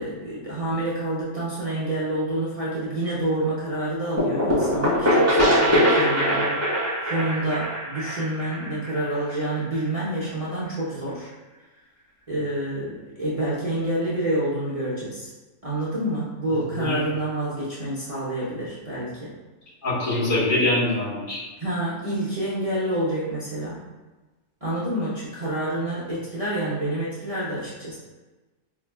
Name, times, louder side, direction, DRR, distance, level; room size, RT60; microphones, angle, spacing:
voice 1, 0.0-6.6 7.0-11.3 12.3-15.3 15.6-19.3 21.6-23.8 24.6-27.9, right 1 dB, 35° right, -9 dB, 0.6 m, -28 dB
sound 1, 4.2-9.7, equal, 15° right, 0.8 m, -22 dB
voice 2, 19.8-21.4, left 2 dB, 80° left, -10 dB, 2.1 m, -23 dB
4.6 x 2.6 x 2.3 m, 1.2 s
omnidirectional pair, 1.5 m